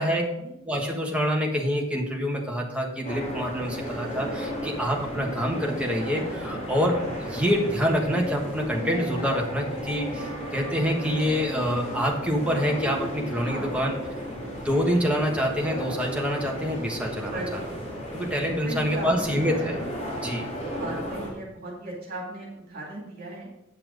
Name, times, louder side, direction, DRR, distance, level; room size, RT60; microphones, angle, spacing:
voice 1, 0.0-0.5 6.1-6.6 13.4-13.8 17.3-17.8 18.4-19.6 20.8-23.5, right 1 dB, 45° right, -2 dB, 2.3 m, -37 dB
voice 2, 0.7-13.9 14.4-17.6 18.1-19.8 20.2-20.5, equal, 5° right, -1 dB, 1.4 m, -26 dB
sound 1, 3.0-21.3, equal, 35° left, 3.0 m, -34 dB
9.2 x 5.9 x 5.1 m, 0.86 s
head